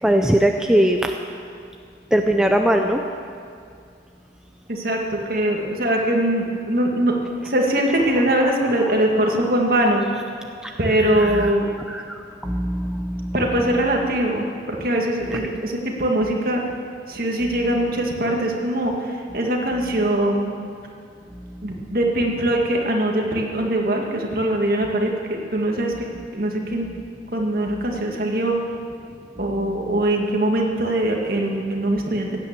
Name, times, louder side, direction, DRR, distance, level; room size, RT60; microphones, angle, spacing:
voice 1, 0.0-1.1 2.1-3.0 10.6-10.7 11.1-11.5 11.9-13.3 15.3-15.4 21.3-21.5, right 1 dB, 5° right, 3 dB, 0.5 m, -20 dB
voice 2, 4.7-7.2 7.4-10.0 10.8-11.7 13.3-16.6 17.1-20.5 21.6-25.9 26.3-26.9 27.3-28.6 29.4-32.4, right 1 dB, 50° right, 0 dB, 1.9 m, -22 dB
16.5 x 9.0 x 7.4 m, 2.3 s
head